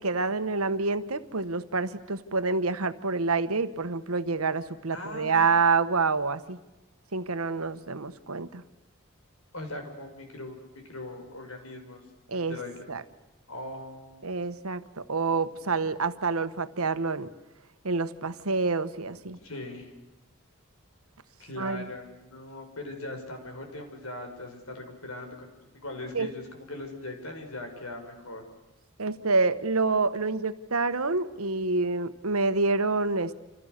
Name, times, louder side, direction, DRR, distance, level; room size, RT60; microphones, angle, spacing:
voice 1, 0.0-6.6 7.1-8.6 12.3-12.6 12.9-13.0 14.2-17.3 17.8-19.4 21.6-21.9 26.1-26.3 29.0-33.3, right 4 dB, 85° right, 12 dB, 1.3 m, -27 dB
voice 2, 4.9-5.5 9.5-10.6 10.8-12.0 12.3-12.7 13.5-14.3 19.4-19.9 21.4-28.4, left 2 dB, 80° left, 4 dB, 5.9 m, -40 dB
28.5 x 27.5 x 6.7 m, 0.99 s
head